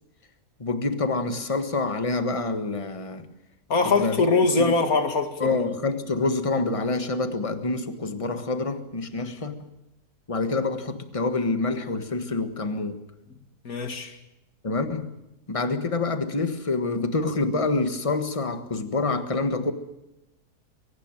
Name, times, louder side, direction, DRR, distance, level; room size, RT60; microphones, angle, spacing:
voice 1, 0.6-3.3 3.8-4.2 4.6-4.7 5.4-9.7 10.3-13.0 14.6-15.1 15.5-19.7, left 3 dB, 20° left, 8 dB, 1.5 m, -27 dB
voice 2, 3.7-5.7 9.1-9.3 13.6-14.2, left 3 dB, 60° left, 7 dB, 2.4 m, -23 dB
22.5 x 18.0 x 9.0 m, 0.91 s
omnidirectional pair, 1.7 m